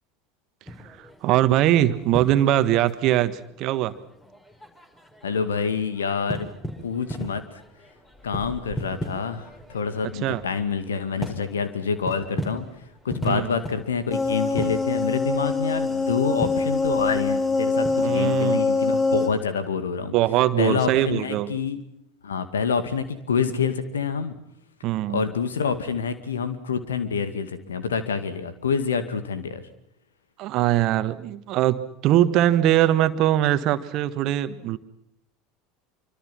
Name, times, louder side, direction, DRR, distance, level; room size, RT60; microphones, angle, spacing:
sound 1, 0.7-18.3, equal, 15° left, 4.9 m, -38 dB
voice 1, 0.8-3.9 10.2-10.4 13.2-13.5 18.0-18.6 20.1-21.5 24.8-25.2 30.4-34.8, right 13 dB, 45° right, 12 dB, 1.5 m, -22 dB
voice 2, 5.2-6.5 6.8-7.4 8.2-12.7 13.0-20.2 20.6-21.8 22.2-24.4 25.1-29.6, left 6 dB, 70° left, 11 dB, 2.2 m, -27 dB
sound 2, 14.1-19.3, left 3 dB, 30° left, 3.2 m, -24 dB
26.0 x 25.0 x 6.0 m, 0.79 s
figure-of-eight pair, 70°, 0 cm